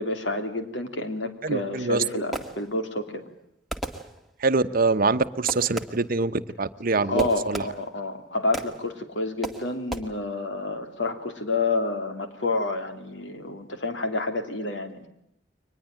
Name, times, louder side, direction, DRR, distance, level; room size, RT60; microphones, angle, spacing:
voice 1, 0.0-3.2 7.1-15.1, left 2 dB, 80° left, 6 dB, 3.2 m, -29 dB
voice 2, 1.4-2.0 4.4-7.6, right 3 dB, 50° right, 11 dB, 1.0 m, -24 dB
Fireworks, 1.8-3.0 3.7-4.6 5.5-6.2 7.2-8.1 8.5-9.0 9.4-10.0, right 1 dB, ahead, 2.0 m, -36 dB
23.5 x 20.5 x 9.0 m, 0.76 s
head